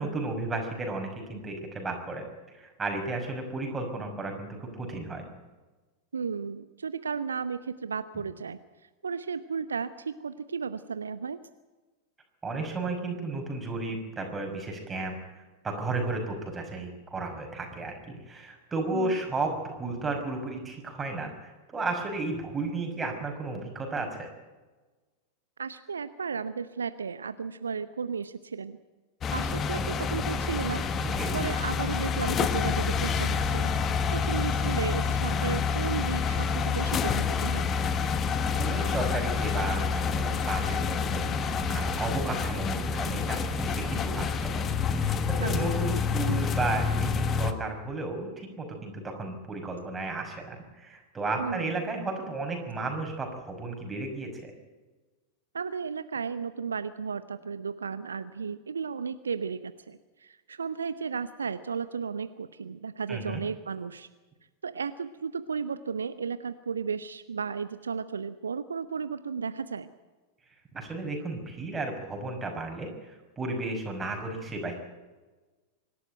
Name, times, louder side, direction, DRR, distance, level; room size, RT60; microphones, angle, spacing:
voice 1, 0.0-2.3 2.5-5.2 12.4-15.2 15.6-24.3 31.1-31.4 38.1-54.5 63.1-63.4 70.7-74.8, right 3 dB, 15° right, 2 dB, 5.6 m, -34 dB
voice 2, 6.1-8.6 9.0-11.4 18.9-19.2 25.6-28.8 29.3-30.8 31.3-33.7 34.1-37.7 45.4-45.5 51.4-51.7 55.5-64.1 64.6-69.9, right 6 dB, 70° right, 13 dB, 0.7 m, -34 dB
sound 1, 29.2-47.5, left 5 dB, 25° left, 1.4 m, -28 dB
25.0 x 12.5 x 9.1 m, 1.2 s
figure-of-eight pair, 90°, 0 cm